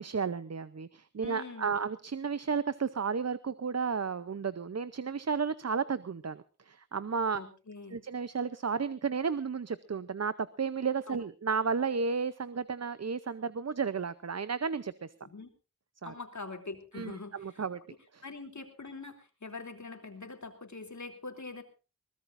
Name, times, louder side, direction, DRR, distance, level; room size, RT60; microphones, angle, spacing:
voice 1, 0.0-7.4 7.9-15.1 16.0-16.1 16.9-17.8 18.1-18.2, right 5 dB, 55° right, 14 dB, 0.7 m, -33 dB
voice 2, 1.2-1.8 7.3-8.0 11.1-11.2 15.2-15.5 16.0-17.6 18.2-21.6, left 3 dB, 65° left, 5 dB, 3.1 m, -44 dB
21.5 x 19.5 x 2.6 m, 0.33 s
wide cardioid pair, 60°, 31 cm